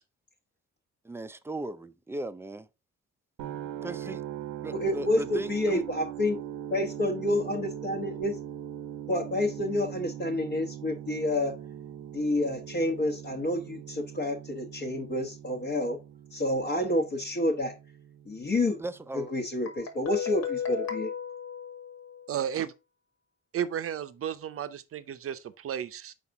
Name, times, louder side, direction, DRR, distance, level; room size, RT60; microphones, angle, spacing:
voice 1, 1.0-2.7 3.8-4.2 4.6-5.8 18.8-19.3, right 2 dB, 10° right, 0.5 m, -37 dB
sound 1, 3.4-19.3, right 11 dB, 85° right, 0.8 m, -41 dB
voice 2, 4.8-6.4 6.7-8.4 9.1-11.6 12.1-16.0 16.3-17.7 18.3-18.8 19.1-21.1, left 1 dB, 35° left, 1.1 m, -29 dB
Guitar, 19.7-22.4, left 7 dB, 65° left, 1.8 m, -35 dB
voice 3, 22.3-22.7 23.5-26.1, right 9 dB, 50° right, 0.7 m, -33 dB
5.2 x 4.1 x 4.7 m
cardioid pair, 90°, 30 cm